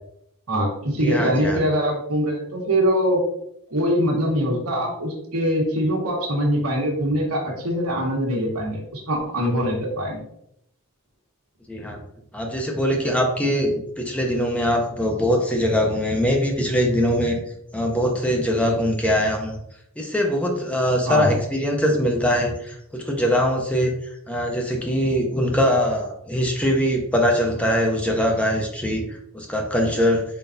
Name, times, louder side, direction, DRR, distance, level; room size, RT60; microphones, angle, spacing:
voice 1, 0.5-3.2 3.7-10.2 21.1-21.4, equal, 90° right, -1 dB, 1.3 m, -23 dB
voice 2, 1.0-1.6 11.7-12.0 12.3-17.4 17.7-19.5 20.0-23.9 24.3-30.2, equal, 5° left, 1 dB, 0.6 m, -22 dB
4.6 x 3.9 x 2.6 m, 0.76 s
head